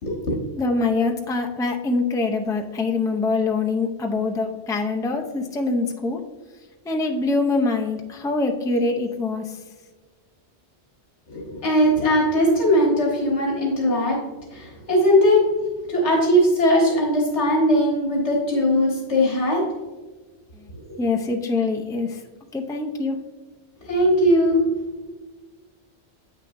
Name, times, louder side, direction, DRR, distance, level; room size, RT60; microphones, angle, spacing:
voice 1, 0.0-0.4 11.3-14.2 14.5-15.4 15.9-19.6 23.8-24.6, equal, 80° left, -3 dB, 1.6 m, -19 dB
voice 2, 0.6-6.2 6.9-9.6 20.6-20.7 21.0-22.2 22.5-23.2, left 3 dB, 5° left, 2 dB, 0.3 m, -24 dB
8.2 x 6.2 x 2.6 m, 1.3 s
omnidirectional pair, 1.2 m